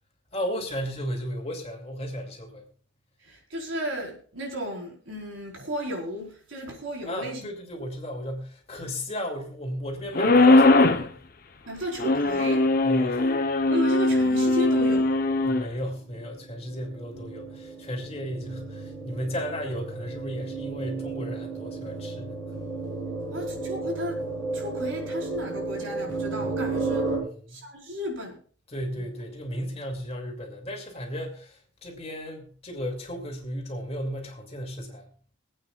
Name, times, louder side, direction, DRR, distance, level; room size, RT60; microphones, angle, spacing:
voice 1, 0.3-2.7 7.0-11.1 12.8-13.3 15.4-22.3 27.2-27.6 28.7-35.1, equal, 30° left, 1 dB, 2.5 m, -34 dB
voice 2, 3.2-7.4 11.7-12.7 13.7-15.1 23.3-27.1 27.5-28.4 29.0-29.1, equal, 80° right, 0 dB, 4.4 m, -34 dB
sound 1, 10.1-11.1 12.0-15.6, left 2 dB, 45° left, 0.8 m, -20 dB
sound 2, 14.1-27.2, right 3 dB, 20° right, 7.1 m, -34 dB
25.0 x 8.8 x 2.4 m, 0.43 s
head